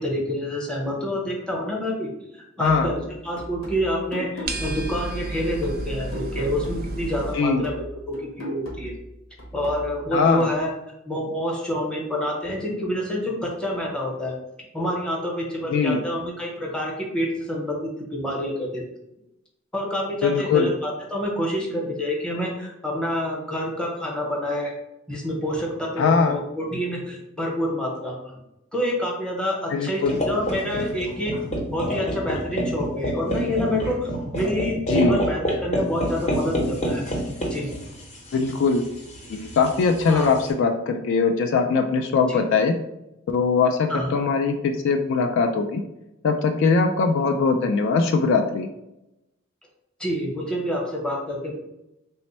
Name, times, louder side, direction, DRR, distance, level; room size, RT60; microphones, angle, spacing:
voice 1, 0.0-2.1 2.6-8.9 9.5-10.7 11.0-14.4 14.7-18.8 19.7-24.7 25.1-28.3 28.7-31.4 31.7-37.1 37.5-37.7 40.1-40.3 42.3-42.4 43.9-44.2 50.0-51.6, equal, 5° left, -2 dB, 0.8 m, -27 dB
sound 1, 2.6-7.1 7.4-10.6, equal, 85° left, 1.0 m, -38 dB
sound 2, 4.5-7.3, right 2 dB, 45° right, 0.4 m, -31 dB
voice 2, 10.1-10.5 15.7-16.0 20.2-20.7 26.0-26.4 29.7-30.2 34.9-35.2 38.3-38.9 39.3-42.7 43.3-45.8 46.2-48.7, left 4 dB, 60° left, 5 dB, 0.3 m, -21 dB
sound 3, 30.1-40.5, equal, 35° left, 0.7 m, -28 dB
3.3 x 2.1 x 4.2 m, 0.89 s
head